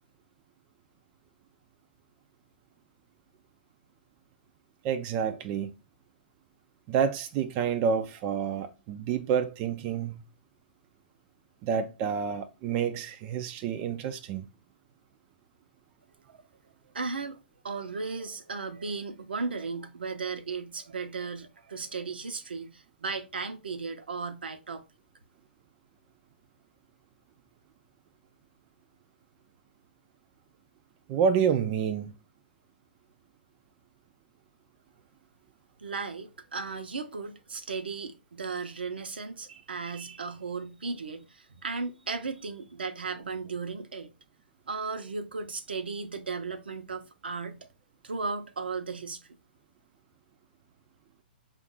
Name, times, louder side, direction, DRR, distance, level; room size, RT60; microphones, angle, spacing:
voice 1, 4.8-5.7 6.9-10.2 11.6-14.5 31.1-32.1, right 7 dB, 30° right, 0.4 m, -28 dB
voice 2, 16.9-17.4 17.6-24.8 35.8-44.1 44.7-47.7 48.0-49.2, right 4 dB, 80° right, 0.7 m, -36 dB
5.2 x 2.4 x 3.6 m
hypercardioid pair, 130°, 5 cm